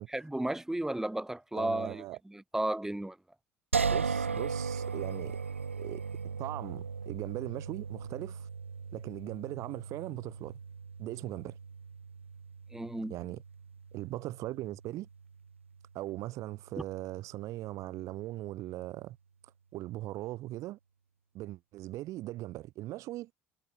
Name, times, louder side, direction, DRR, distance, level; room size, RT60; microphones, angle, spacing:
voice 1, 0.1-3.2 12.7-13.1, right 1 dB, 5° right, 4.7 m, -34 dB
voice 2, 1.5-2.2 3.9-5.4 5.8-6.0 6.4-8.5 8.9-10.6 11.0-11.6 13.1-13.4 13.9-15.1 15.9-19.2 19.7-20.8 21.3-23.3, right 16 dB, 55° right, 3.3 m, -39 dB
sound 1, 3.7-16.8, right 5 dB, 85° right, 6.2 m, -38 dB
figure-of-eight pair, 65°, 7 cm